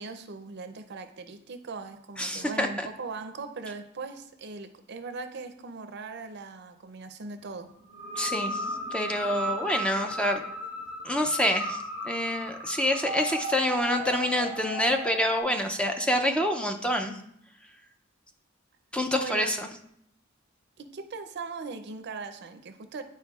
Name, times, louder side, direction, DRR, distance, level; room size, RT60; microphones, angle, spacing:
voice 1, 0.0-7.7 19.1-19.5 20.8-23.0, right 4 dB, 55° right, 8 dB, 0.5 m, -39 dB
voice 2, 2.2-2.9 8.2-8.6 8.9-10.4 11.0-11.8 12.0-17.1 18.9-19.7, left 1 dB, 5° left, 5 dB, 0.4 m, -27 dB
sound 1, 7.9-15.4, equal, 45° left, 2.5 m, -35 dB
9.6 x 4.4 x 2.4 m, 0.70 s
head